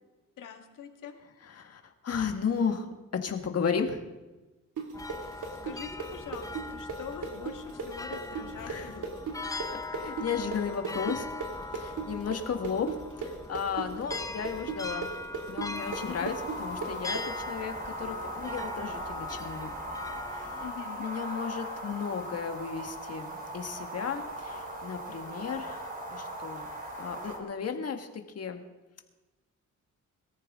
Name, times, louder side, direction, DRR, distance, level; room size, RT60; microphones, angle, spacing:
voice 1, 0.4-1.2 5.6-9.2 16.1-16.3 20.6-21.0, left 7 dB, 85° left, 4 dB, 1.9 m, -43 dB
voice 2, 1.4-2.9 3.1-4.0 8.6-8.9 10.0-11.3 11.7-12.9 13.2-15.1 15.5-16.3 16.6-19.7 20.3-20.6 21.0-26.7 27.0-28.6, left 6 dB, 50° left, 5 dB, 1.7 m, -34 dB
sound 1, 4.8-12.4 12.6-17.2, right 6 dB, 75° right, 2.6 m, -36 dB
sound 2, 4.9-20.7, left 2 dB, 10° left, 0.6 m, -41 dB
sound 3, 15.8-27.4, equal, 25° right, 3.3 m, -39 dB
22.5 x 14.0 x 3.7 m, 1.1 s
cardioid pair, 110°, 31 cm